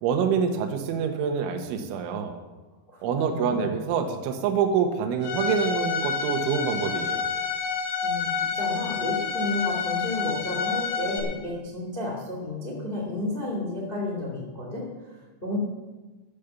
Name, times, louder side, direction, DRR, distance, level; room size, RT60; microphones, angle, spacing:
voice 1, 0.0-2.4 3.0-7.2, right 6 dB, 85° right, 5 dB, 3.6 m, -26 dB
voice 2, 2.9-3.8 8.0-15.6, left 2 dB, 15° left, -2 dB, 1.8 m, -32 dB
Bowed string instrument, 5.2-11.2, left 6 dB, 65° left, 3.5 m, -28 dB
12.0 x 8.8 x 7.0 m, 1.2 s
omnidirectional pair, 5.4 m